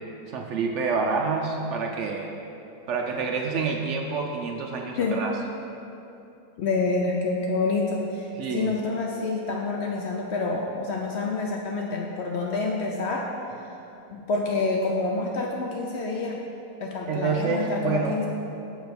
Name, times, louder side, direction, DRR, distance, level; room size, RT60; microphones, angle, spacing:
voice 1, 0.3-2.3 2.9-5.3 8.4-8.7 17.1-18.2, right 4 dB, 75° right, 2 dB, 0.6 m, -27 dB
voice 2, 6.6-13.3 14.1-16.4 16.8-18.3, left 3 dB, 85° left, 0 dB, 0.5 m, -27 dB
6.3 x 5.0 x 6.8 m, 2.9 s
omnidirectional pair, 1.8 m